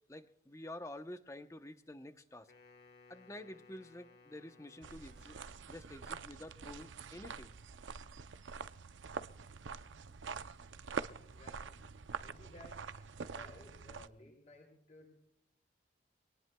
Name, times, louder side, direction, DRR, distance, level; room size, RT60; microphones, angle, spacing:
voice 1, 0.1-2.5 3.1-5.4 5.7-7.5, left 1 dB, 15° left, 9 dB, 0.8 m, -49 dB
Wind instrument woodwind instrument, 2.4-5.9, left 3 dB, 55° left, 1.2 m, -62 dB
sound 1, 4.8-14.1, right 5 dB, 85° right, 0.6 m, -45 dB
voice 2, 11.2-11.8 12.2-15.1, left 2 dB, 35° left, -1 dB, 7.5 m, -58 dB
25.0 x 18.5 x 2.3 m, 0.75 s
head